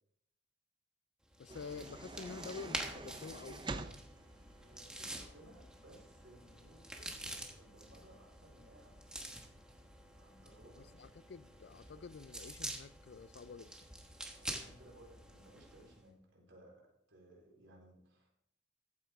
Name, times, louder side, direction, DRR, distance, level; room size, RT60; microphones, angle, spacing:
sound 1, 1.3-16.0, right 1 dB, 5° right, 1.2 m, -48 dB
voice 1, 1.4-3.6 10.9-13.7, left 5 dB, 60° left, 0.4 m, -48 dB
sound 2, 1.5-5.3, right 2 dB, 25° right, 0.6 m, -47 dB
voice 2, 4.6-9.1 10.1-11.1 14.3-18.3, right 1 dB, 75° right, 4.0 m, -61 dB
14.5 x 8.6 x 3.5 m
head